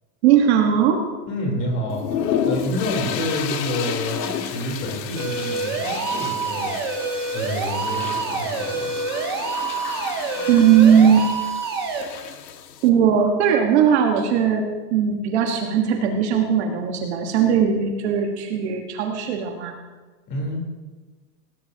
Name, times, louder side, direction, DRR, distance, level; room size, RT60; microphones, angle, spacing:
voice 1, 0.2-1.0 10.5-11.3 12.8-14.6 14.9-19.7, right 8 dB, 40° right, 3 dB, 1.5 m, -18 dB
voice 2, 1.3-6.8 7.3-8.9 20.3-20.6, left 1 dB, 25° left, -1 dB, 3.6 m, -28 dB
sound 1, 1.9-12.9, left 8 dB, 80° left, 1.7 m, -31 dB
sound 2, 5.2-12.0, right 4 dB, 15° right, 0.4 m, -27 dB
18.5 x 17.5 x 2.8 m, 1.3 s
supercardioid pair, 180°, 49 cm